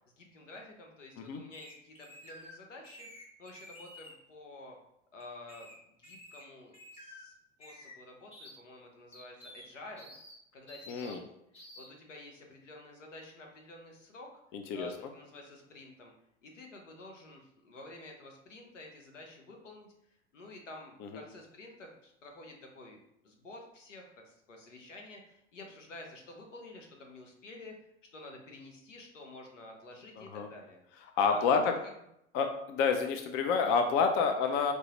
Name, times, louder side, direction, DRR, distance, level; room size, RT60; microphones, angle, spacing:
voice 1, 0.2-3.1 3.4-4.8 5.1-7.3 7.6-10.1 10.5-11.2 11.8-14.3 14.7-16.1 16.4-19.9 20.3-23.0 23.2-27.7 28.1-30.8 31.2-31.7 34.4-34.6, left 2 dB, 80° left, 2 dB, 0.9 m, -50 dB
sound 1, 1.5-2.5 2.8-4.2 5.2-5.7 6.0-6.4 6.7-7.2 7.6-7.9 8.3-8.6 9.1-9.7 10.0-10.4 10.7-11.2 11.5-11.9, left 1 dB, 15° left, 1.0 m, -51 dB
voice 2, 10.9-11.2 14.5-14.9 21.0-21.2 30.2-30.5 31.2-31.7 32.3-34.7, left 5 dB, 30° left, 6 dB, 0.4 m, -29 dB
4.4 x 2.0 x 2.9 m, 0.78 s
figure-of-eight pair, 85°, 37 cm